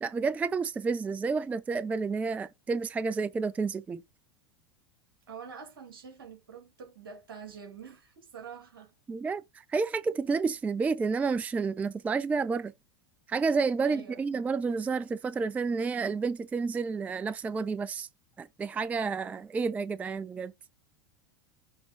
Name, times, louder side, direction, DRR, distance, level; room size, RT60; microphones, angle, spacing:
voice 1, 0.0-4.0 9.1-12.7 13.3-18.1 18.4-20.5, right 4 dB, 10° right, 0.3 m, -30 dB
voice 2, 5.3-8.9 13.8-14.2, right 6 dB, 65° right, 2.4 m, -46 dB
6.4 x 3.6 x 4.7 m
figure-of-eight pair, 85°, 13 cm